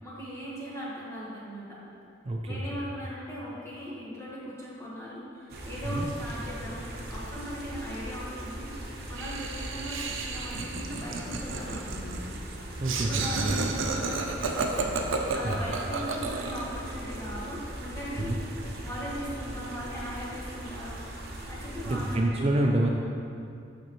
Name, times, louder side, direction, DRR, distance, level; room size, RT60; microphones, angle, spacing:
voice 1, 0.0-1.8 2.5-12.2 12.9-18.3 18.8-21.0 21.5-22.4, equal, 15° left, -7 dB, 1.3 m, -39 dB
voice 2, 2.2-2.8 5.8-6.1 12.8-13.6 15.4-15.6 18.2-18.4 21.8-22.9, right 1 dB, 30° right, 0 dB, 0.4 m, -28 dB
sound 1, 5.5-22.2, right 1 dB, 55° right, 0.8 m, -40 dB
Laughter, 9.2-16.7, right 4 dB, 80° right, 0.5 m, -32 dB
6.6 x 6.0 x 3.0 m, 2.5 s
head